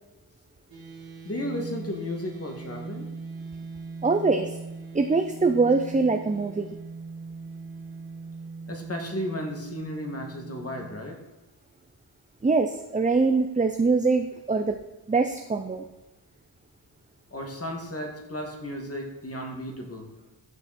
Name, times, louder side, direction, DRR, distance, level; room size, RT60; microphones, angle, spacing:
sound 1, 0.7-11.0, right 4 dB, 55° right, 1.8 m, -40 dB
voice 1, 1.2-3.1 8.7-11.2 17.3-20.1, left 1 dB, 35° left, 1 dB, 2.3 m, -34 dB
voice 2, 4.0-4.6 4.9-6.7 12.4-14.8 15.1-15.8, right 4 dB, 20° right, 6 dB, 0.6 m, -23 dB
14.0 x 6.4 x 4.3 m, 1.1 s
wide cardioid pair, 110°, 41 cm